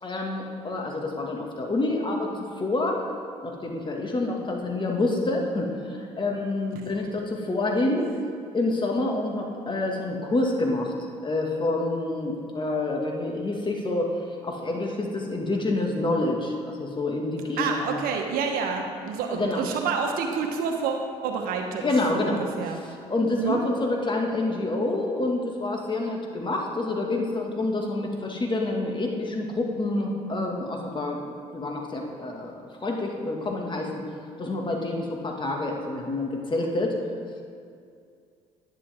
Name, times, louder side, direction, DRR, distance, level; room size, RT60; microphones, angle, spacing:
voice 1, 0.0-3.0 3.4-8.1 8.5-10.9 11.2-14.1 14.4-18.0 19.3-19.6 21.8-22.4 23.1-31.2 31.5-32.5 32.8-34.0 34.4-37.0, left 2 dB, 30° left, 1 dB, 1.9 m, -27 dB
voice 2, 17.6-21.8 22.1-22.8 23.4-23.6, right 5 dB, 70° right, 3 dB, 1.1 m, -28 dB
10.5 x 10.0 x 3.6 m, 2.3 s
hypercardioid pair, 60°, 16 cm